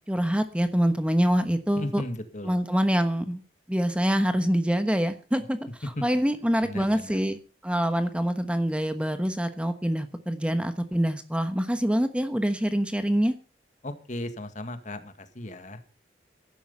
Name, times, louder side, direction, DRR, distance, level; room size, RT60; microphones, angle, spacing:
voice 1, 0.1-2.0 2.4-3.4 3.7-5.6 6.0-13.3, equal, 5° right, 9 dB, 1.2 m, -25 dB
voice 2, 1.7-2.5 6.0-6.1 6.6-7.2 13.8-15.8, left 1 dB, 45° left, 9 dB, 1.9 m, -36 dB
16.0 x 12.0 x 5.5 m, 0.37 s
head